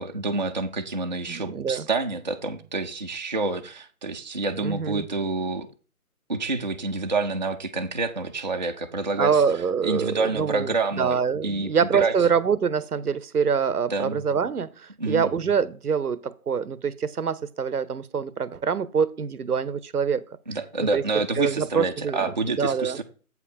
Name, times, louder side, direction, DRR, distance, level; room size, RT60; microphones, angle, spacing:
voice 1, 0.0-5.7 6.3-9.4 9.8-12.1 13.9-14.2 15.0-15.3 20.5-23.0, right 3 dB, 30° right, 3 dB, 0.5 m, -28 dB
voice 2, 1.3-1.9 4.6-5.1 9.2-10.7 11.0-20.2 20.8-21.0 21.4-23.0, right 6 dB, 85° right, 19 dB, 0.8 m, -25 dB
8.1 x 4.7 x 5.5 m, 0.38 s
figure-of-eight pair, 150°, 44 cm